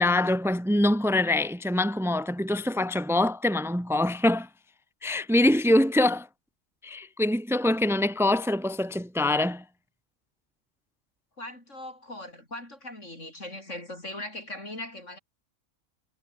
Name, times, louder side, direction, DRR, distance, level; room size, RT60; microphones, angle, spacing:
voice 1, 0.0-4.5 5.0-6.3 6.8-9.6, left 1 dB, ahead, 1.4 m, -24 dB
voice 2, 11.4-15.2, left 1 dB, 65° left, 8.2 m, -39 dB
omnidirectional pair, 1.4 m